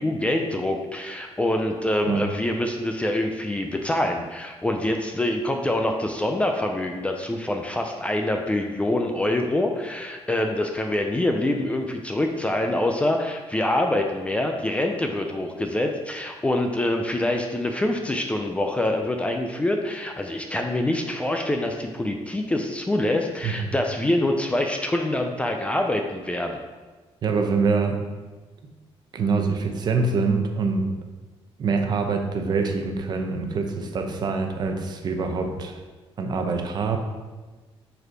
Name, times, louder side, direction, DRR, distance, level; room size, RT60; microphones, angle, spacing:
voice 1, 0.0-26.6, left 1 dB, 10° left, 3 dB, 0.4 m, -25 dB
voice 2, 27.2-28.0 29.1-31.0 31.6-35.8 36.2-37.0, right 4 dB, 40° right, 4 dB, 0.7 m, -25 dB
5.3 x 4.2 x 4.6 m, 1.3 s
cardioid pair, 160°, 11 cm